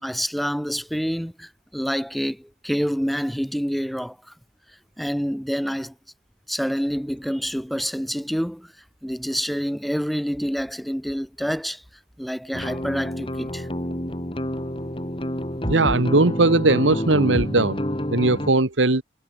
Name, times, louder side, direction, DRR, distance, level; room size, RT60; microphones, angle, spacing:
voice 1, 0.0-4.3 5.0-5.9 6.5-8.7 9.0-11.8 12.2-13.7, equal, ahead, 5.5 m, -27 dB
sound 1, 12.5-18.5, equal, 30° left, 3.8 m, -28 dB
voice 2, 15.7-17.8 18.1-19.0, right 2 dB, 90° right, 1.7 m, -19 dB
head